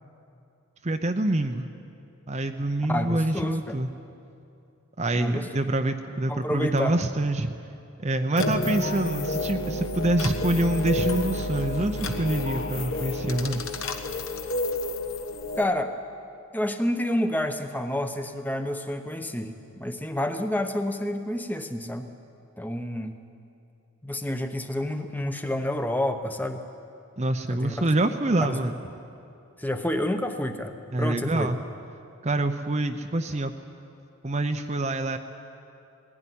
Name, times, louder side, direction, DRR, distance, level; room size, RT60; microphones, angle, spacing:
voice 1, 0.8-1.6 2.3-3.9 5.0-7.5 8.0-13.6 27.2-28.8 30.9-31.6 32.2-33.5 34.2-35.2, right 1 dB, 30° right, 6 dB, 0.7 m, -26 dB
voice 2, 2.9-3.8 5.1-5.5 6.3-7.0 15.6-15.9 16.5-22.1 22.6-23.2 24.0-26.6 27.5-27.9 28.4-28.6 29.6-31.5, left 1 dB, 10° left, 7 dB, 0.9 m, -29 dB
sound 1, 8.4-15.6, left 2 dB, 65° left, 1.2 m, -30 dB
19.5 x 15.5 x 10.0 m, 2.7 s
head